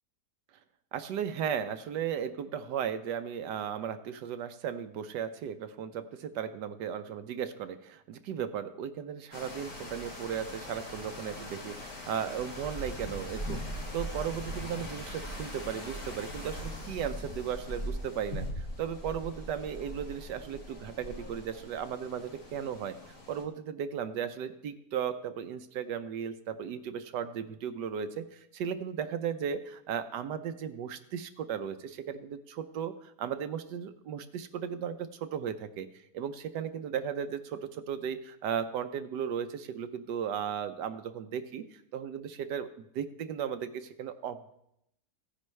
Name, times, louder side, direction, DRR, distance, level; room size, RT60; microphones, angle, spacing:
voice 1, 0.9-42.7 42.9-44.5, right 8 dB, 75° right, 10 dB, 1.3 m, -36 dB
sound 1, 9.3-23.4, equal, 55° left, 3.4 m, -41 dB
16.5 x 9.9 x 3.2 m, 0.77 s
omnidirectional pair, 1.9 m